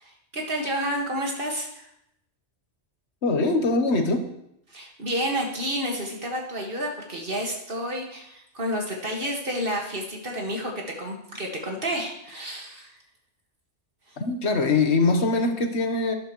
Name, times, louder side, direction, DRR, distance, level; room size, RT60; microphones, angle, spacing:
voice 1, 0.0-1.9 4.7-12.9 14.1-14.2, equal, 50° right, 0 dB, 2.0 m, -30 dB
voice 2, 3.2-4.2 14.2-16.1, left 3 dB, 65° left, 6 dB, 1.4 m, -22 dB
12.0 x 10.5 x 3.1 m, 0.79 s
omnidirectional pair, 1.2 m